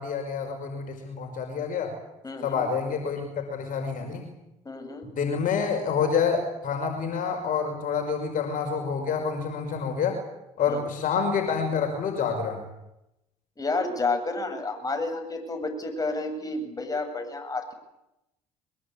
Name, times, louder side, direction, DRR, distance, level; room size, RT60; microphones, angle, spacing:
voice 1, 0.0-1.9 2.4-4.3 5.0-10.2 10.6-12.6, left 6 dB, 55° left, 4 dB, 5.3 m, -28 dB
voice 2, 2.2-2.6 4.6-5.1 10.7-10.9 13.6-17.7, left 3 dB, 20° left, 5 dB, 7.8 m, -30 dB
23.5 x 21.5 x 8.7 m, 0.90 s
hypercardioid pair, 60°, 17 cm